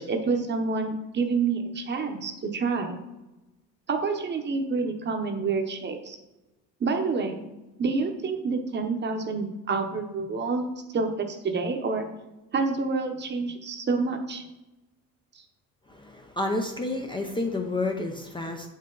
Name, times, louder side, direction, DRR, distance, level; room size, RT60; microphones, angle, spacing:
voice 1, 0.0-3.0 3.9-6.2 6.8-7.4 7.8-10.7 10.9-12.1 12.5-14.4, right 4 dB, 30° right, 5 dB, 1.0 m, -28 dB
voice 2, 15.9-18.7, left 2 dB, 15° left, 3 dB, 0.6 m, -30 dB
7.8 x 5.4 x 3.9 m, 1.0 s
cardioid pair, 135°, 33 cm